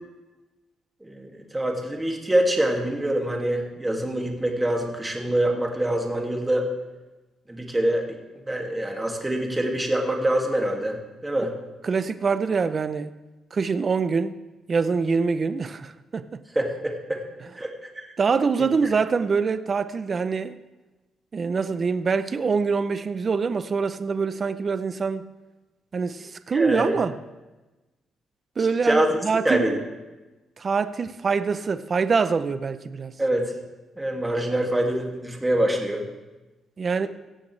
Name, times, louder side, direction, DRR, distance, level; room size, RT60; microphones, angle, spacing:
voice 1, 1.0-6.7 7.5-8.0 8.5-11.5 16.6-17.2 17.6-18.1 18.6-18.7 26.5-27.0 28.8-29.1 29.4-29.8 33.2-33.5 34.0-36.0, right 1 dB, 10° right, 2.2 m, -25 dB
voice 2, 11.8-13.1 13.5-14.4 14.7-16.4 18.2-20.6 21.3-25.3 25.9-27.2 28.6-29.8 30.6-33.1 36.8-37.1, right 5 dB, 35° right, 0.6 m, -24 dB
16.5 x 15.0 x 3.3 m
cardioid pair, 130°, 0 cm